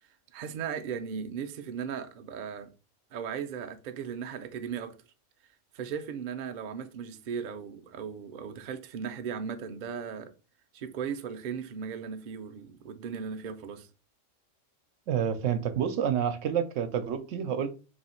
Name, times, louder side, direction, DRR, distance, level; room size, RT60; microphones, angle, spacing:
voice 1, 0.3-2.7 3.1-5.0 5.7-10.3 10.7-13.9, right 7 dB, 55° right, 0.5 m, -37 dB
voice 2, 15.1-17.7, right 8 dB, 90° right, 0.9 m, -28 dB
3.3 x 3.1 x 4.3 m
omnidirectional pair, 1.3 m